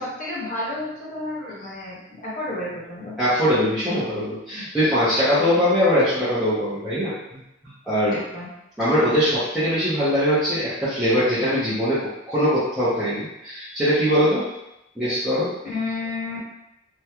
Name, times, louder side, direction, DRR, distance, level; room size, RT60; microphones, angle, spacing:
voice 1, 0.0-3.1 8.1-8.5 15.6-16.4, left 2 dB, 40° left, -7 dB, 1.1 m, -31 dB
voice 2, 3.2-7.4 7.9-8.2 8.8-14.5 15.0-15.5, equal, ahead, -14 dB, 0.8 m, -21 dB
3.4 x 2.3 x 2.9 m, 0.86 s
head